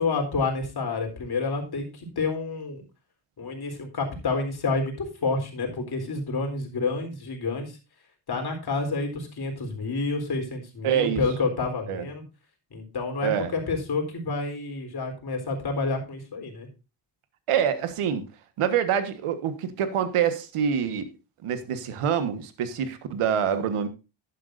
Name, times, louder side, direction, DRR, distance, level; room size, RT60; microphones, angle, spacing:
voice 1, 0.0-2.8 3.4-7.7 8.3-12.2 12.7-16.7, left 3 dB, 50° left, 3.9 m, -29 dB
voice 2, 10.8-11.2 11.9-12.0 13.2-13.5 17.5-18.3 18.6-21.1 21.4-23.9, right 8 dB, 90° right, 1.5 m, -26 dB
11.5 x 10.5 x 2.6 m
cardioid pair, 110°, 50 cm